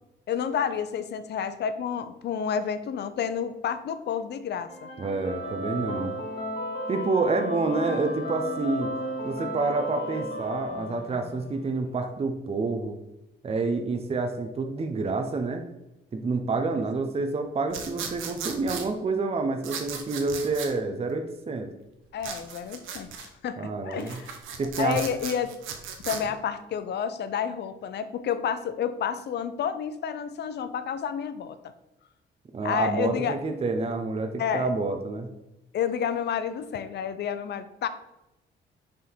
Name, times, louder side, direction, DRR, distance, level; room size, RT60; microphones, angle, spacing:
voice 1, 0.3-4.9 16.7-16.8 22.1-24.3 24.8-25.5 26.0-31.6 32.6-33.3 34.4-34.7 35.7-37.9, left 8 dB, 60° left, 12 dB, 0.6 m, -30 dB
sound 1, 4.7-11.7, equal, 25° left, 1.9 m, -34 dB
voice 2, 5.0-6.1 6.9-8.9 9.2-13.0 13.4-15.6 16.1-21.7 23.6-24.2 24.6-25.0 32.5-35.3, right 3 dB, 30° right, 5 dB, 0.7 m, -28 dB
sound 2, 17.7-18.9 19.6-20.7 22.2-23.3 23.9-26.2, right 7 dB, 85° right, 0.8 m, -36 dB
6.0 x 3.7 x 4.4 m, 0.94 s
cardioid pair, 90°, 20 cm